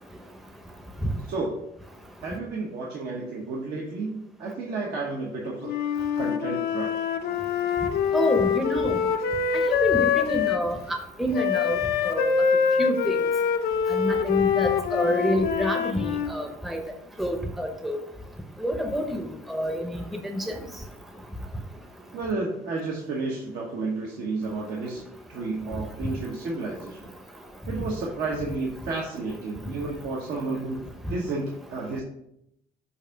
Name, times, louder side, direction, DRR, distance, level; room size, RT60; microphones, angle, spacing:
voice 1, 2.2-5.7 6.2-6.9 22.1-25.0 25.3-27.1 27.7-30.8 31.1-32.0, right 3 dB, 70° right, -3 dB, 1.2 m, -31 dB
Wind instrument woodwind instrument, 5.6-10.6 11.3-16.3, left 7 dB, 70° left, 0.6 m, -25 dB
voice 2, 8.1-9.0 9.8-11.8 12.0-12.3 12.8-13.2 13.9-16.8 17.2-18.0 18.6-19.0 19.5-19.9 20.2-20.5, equal, ahead, 4 dB, 0.7 m, -27 dB
7.0 x 2.7 x 5.7 m, 0.80 s
cardioid pair, 110°, 17 cm